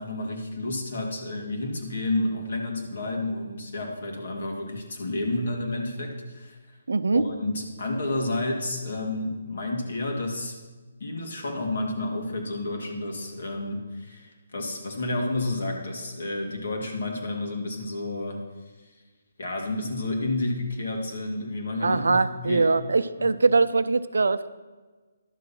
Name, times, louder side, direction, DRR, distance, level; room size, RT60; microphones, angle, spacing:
voice 1, 0.0-6.8 7.1-10.5 11.0-18.4 19.4-22.7 23.2-23.3, left 2 dB, 65° left, 1 dB, 2.3 m, -30 dB
voice 2, 6.9-7.2 21.8-24.5, right 3 dB, 80° right, 13 dB, 0.5 m, -22 dB
11.5 x 6.7 x 5.8 m, 1.3 s
figure-of-eight pair, 145°, 0 cm